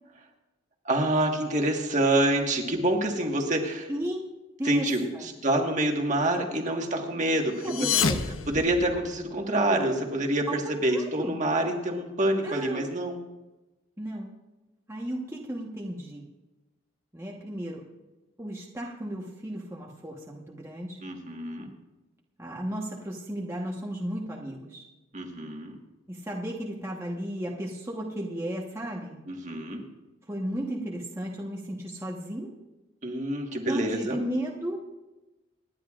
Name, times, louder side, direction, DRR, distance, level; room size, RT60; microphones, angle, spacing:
voice 1, 0.8-3.9 4.6-7.9 8.5-13.2 21.0-21.7 25.1-25.8 29.3-29.8 33.0-34.2, right 1 dB, 40° right, 2 dB, 1.6 m, -27 dB
voice 2, 3.9-4.2 4.6-4.9 5.1-5.3 7.5-8.4 10.5-11.3 12.4-13.0 14.0-14.3 14.9-16.3 17.1-17.8 18.4-21.0 22.4-24.9 26.1-29.2 30.3-32.5 33.6-34.8, right 1 dB, 15° right, -3 dB, 1.2 m, -34 dB
sound 1, 7.5-9.4, left 6 dB, 90° left, 0.8 m, -29 dB
27.0 x 10.5 x 2.5 m, 1.1 s
head